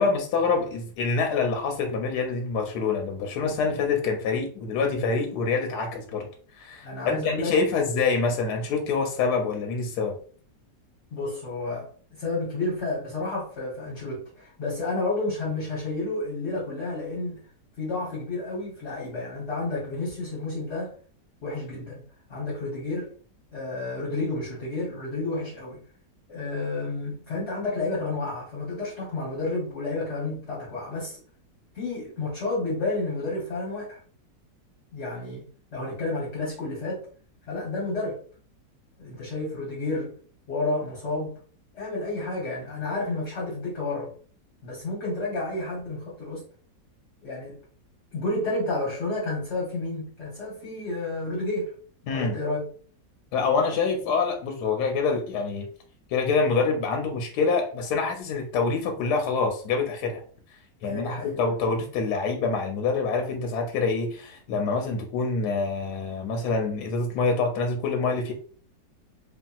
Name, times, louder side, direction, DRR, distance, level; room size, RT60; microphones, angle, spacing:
voice 1, 0.0-6.3 6.5-10.2 52.1-52.4 53.3-55.7 56.1-60.2 60.8-68.3, left 4 dB, 70° left, 1.0 m, -26 dB
voice 2, 6.8-7.5 11.1-17.4 17.8-20.9 21.4-22.0 22.3-23.1 23.5-25.8 26.3-31.2 31.7-34.0 34.9-35.4 35.7-37.1 37.5-38.2 39.0-40.1 40.5-41.4 41.7-44.1 44.6-46.5 47.2-47.6 48.1-51.7 52.1-52.7 60.8-61.4, left 2 dB, 45° left, 1.0 m, -31 dB
2.9 x 2.7 x 2.3 m
omnidirectional pair, 1.9 m